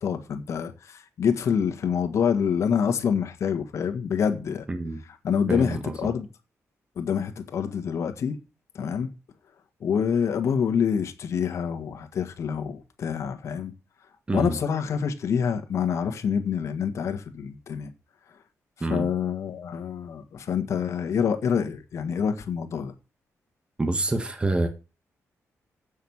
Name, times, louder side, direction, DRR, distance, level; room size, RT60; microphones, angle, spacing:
voice 1, 0.0-4.7 5.2-6.3 6.9-8.4 8.7-9.1 9.8-13.7 14.3-17.9 18.9-22.9, left 7 dB, 65° left, 1.6 m, -26 dB
voice 2, 4.7-5.0 5.5-6.1 14.3-14.6 18.8-19.1 23.8-24.7, right 2 dB, 20° right, 1.4 m, -27 dB
7.9 x 6.5 x 7.2 m
cardioid pair, 115°, 5 cm